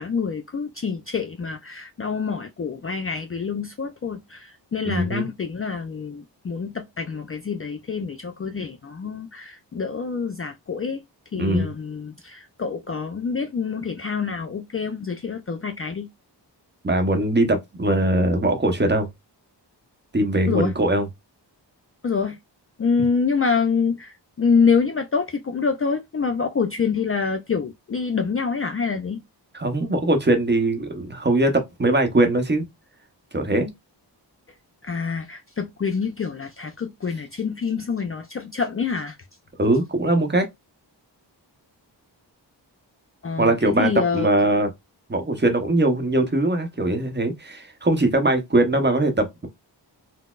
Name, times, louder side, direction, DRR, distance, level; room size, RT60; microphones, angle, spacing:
voice 1, 0.0-11.0 11.3-16.1 20.5-20.7 22.0-22.4 22.8-29.2 34.8-39.2 43.2-44.3, left 5 dB, 35° left, 0.4 m, -26 dB
voice 2, 4.8-5.2 11.4-11.7 16.8-19.1 20.1-21.1 29.5-32.7 33.3-33.7 39.6-40.5 43.4-44.7 45.1-49.5, right 1 dB, 25° right, 0.8 m, -21 dB
3.9 x 2.0 x 2.3 m
cardioid pair, 65°, 44 cm